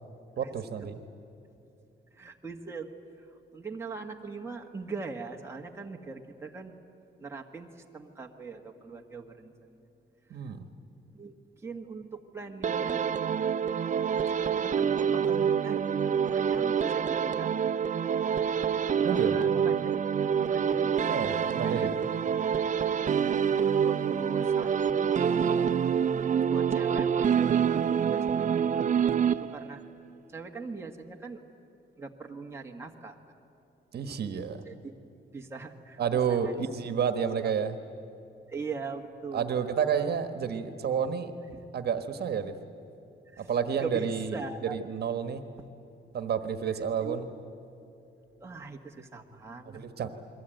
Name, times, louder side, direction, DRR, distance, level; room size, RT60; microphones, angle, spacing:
voice 1, 0.4-1.0 10.3-10.6 19.0-19.4 21.1-22.0 33.9-34.6 36.0-37.8 39.3-41.3 41.7-42.5 43.4-45.4 46.1-47.3 49.7-50.1, right 7 dB, 60° right, 8 dB, 1.4 m, -30 dB
voice 2, 2.2-2.9 3.5-6.7 7.2-9.5 11.1-11.3 11.6-13.0 14.6-17.5 19.0-19.9 20.4-21.0 21.6-21.9 22.9-23.1 23.4-24.7 25.0-25.3 26.5-29.8 30.3-31.4 32.0-33.1 34.7-34.9 35.3-36.0 36.3-36.6 37.4-37.5 38.5-39.6 41.5-41.6 43.3-43.5 43.8-44.8 47.0-47.2 48.4-50.1, right 4 dB, 15° right, 1 dB, 1.6 m, -41 dB
sound 1, 12.6-29.8, right 7 dB, 45° right, 0.7 m, -27 dB
29.0 x 22.0 x 9.1 m, 2.8 s
wide cardioid pair, 165°, 18 cm